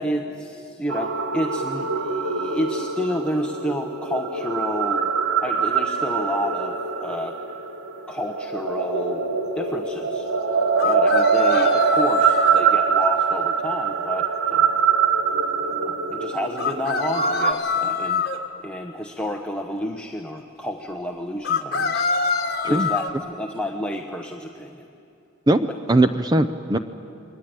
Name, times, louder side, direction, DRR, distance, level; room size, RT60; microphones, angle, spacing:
voice 1, 0.0-5.1 5.4-7.4 8.1-9.3 9.5-10.3 10.8-14.8 15.8-18.2 18.6-22.1 22.6-24.9, equal, 5° left, 1 dB, 1.0 m, -30 dB
sound 1, 0.9-17.5, right 6 dB, 65° right, 2.0 m, -23 dB
sound 2, 10.8-12.6 16.6-18.4 21.4-23.1, left 5 dB, 50° left, 1.6 m, -24 dB
voice 2, 25.5-26.8, right 1 dB, 20° right, 8 dB, 0.6 m, -19 dB
29.5 x 22.0 x 9.0 m, 2.8 s
head